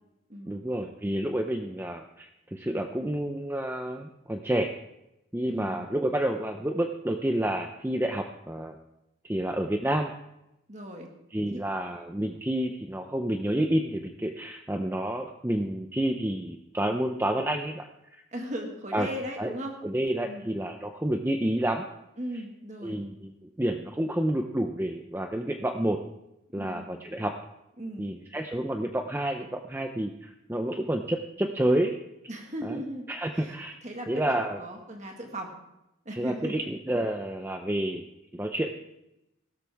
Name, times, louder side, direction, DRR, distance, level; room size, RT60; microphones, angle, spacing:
voice 1, 0.5-4.7 5.3-8.8 9.2-10.1 11.3-18.2 18.9-19.1 19.4-19.5 19.8-21.8 22.8-23.3 23.6-26.0 26.5-27.3 28.0-31.9 32.6-32.7 33.1-33.8 34.1-34.6 36.1-38.0 38.3-38.7, right 1 dB, 10° right, 4 dB, 0.6 m, -29 dB
voice 2, 5.5-5.9 10.7-11.1 11.5-11.6 18.3-19.7 20.3-20.5 22.2-23.0 26.5-27.1 27.8-28.1 32.3-35.5 36.1-36.5, equal, 35° right, 2 dB, 1.7 m, -38 dB
16.5 x 13.5 x 3.5 m, 0.89 s
head